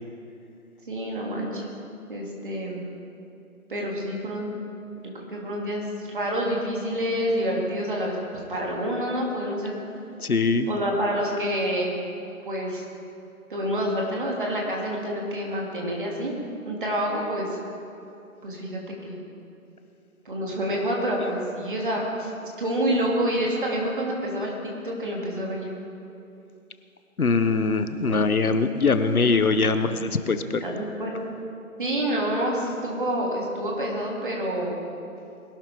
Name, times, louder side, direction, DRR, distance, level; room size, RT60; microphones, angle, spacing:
voice 1, 0.9-1.7 2.1-2.9 3.7-4.6 5.0-8.2 8.5-9.8 10.7-12.0 12.4-12.8 13.5-16.3 16.6-17.5 18.4-18.8 19.1-19.2 20.2-22.3 22.6-25.8 28.1-28.6 30.6-31.1 31.8-34.8, equal, 35° right, -2 dB, 2.6 m, -28 dB
voice 2, 10.2-10.7 27.2-30.6, left 4 dB, 80° left, 10 dB, 1.1 m, -22 dB
21.0 x 12.0 x 3.6 m, 2.7 s
figure-of-eight pair, 170°, 43 cm